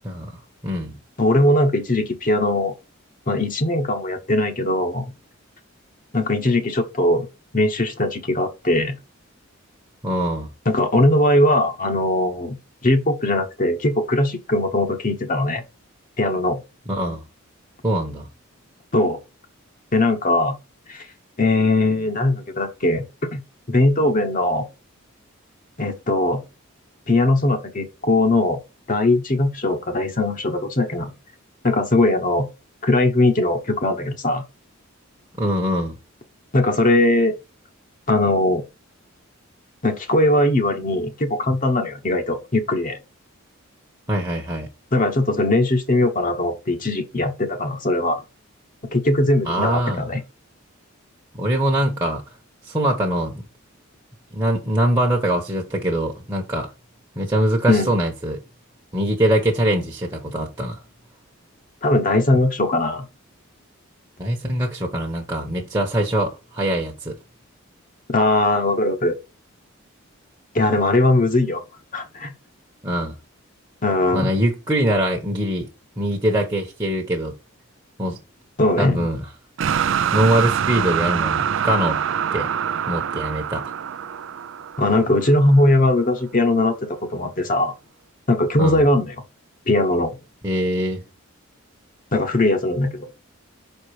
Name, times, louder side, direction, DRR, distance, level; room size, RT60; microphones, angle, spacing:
voice 1, 0.0-1.0 10.0-10.5 16.9-17.2 17.8-18.3 35.4-36.0 44.1-44.7 49.4-50.1 51.3-52.2 52.6-53.5 54.3-56.7 57.2-58.4 58.9-60.8 64.2-67.2 72.8-73.2 74.1-75.7 76.0-77.3 78.0-78.2 78.8-79.2 80.1-82.0 82.3-82.5 82.9-83.7 88.6-88.8 90.4-91.0, right 1 dB, 20° right, 1.1 m, -23 dB
voice 2, 1.2-2.7 3.3-5.0 6.1-7.3 7.5-9.0 10.7-12.6 12.8-15.6 16.2-16.6 18.9-19.2 19.9-20.6 20.9-21.1 21.4-23.0 23.3-23.4 23.7-24.7 25.8-26.4 27.1-28.6 28.9-31.1 31.6-32.5 32.8-34.4 36.5-37.3 38.1-38.6 39.8-43.0 44.9-48.2 48.9-50.2 57.7-57.9 61.8-63.0 68.1-69.2 70.5-71.6 71.9-72.3 73.8-74.3 78.6-79.1 84.8-87.7 88.3-89.1 89.7-90.1 92.1-93.0, left 2 dB, 40° left, 1.0 m, -20 dB
sound 1, 79.6-85.6, right 8 dB, 60° right, 0.4 m, -24 dB
5.9 x 4.5 x 4.8 m
head